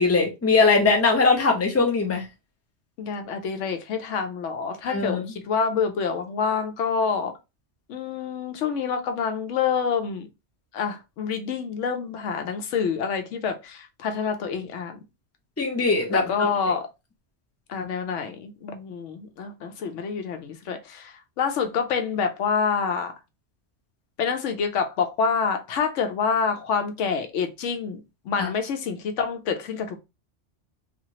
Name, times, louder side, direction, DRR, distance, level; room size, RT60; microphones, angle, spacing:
voice 1, 0.0-2.2 4.8-5.2 15.6-16.7 28.4-28.5, left 4 dB, 20° left, 0.5 m, -21 dB
voice 2, 3.0-7.3 7.9-10.3 10.7-15.0 16.1-16.9 17.7-23.1 24.2-28.0 28.3-30.0, left 6 dB, 85° left, 0.9 m, -27 dB
2.8 x 2.4 x 2.8 m
omnidirectional pair, 1.2 m